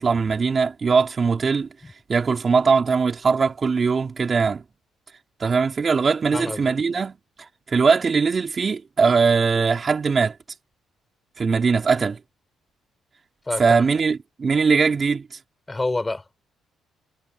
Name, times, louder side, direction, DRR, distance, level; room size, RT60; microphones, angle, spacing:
voice 1, 0.0-1.7 2.1-4.6 5.4-7.2 7.7-10.4 11.4-12.2 13.6-15.3, right 5 dB, 40° right, 4.1 m, -20 dB
voice 2, 13.5-13.8 15.7-16.4, left 2 dB, 20° left, 5.9 m, -27 dB
cardioid pair, 90°, 0 cm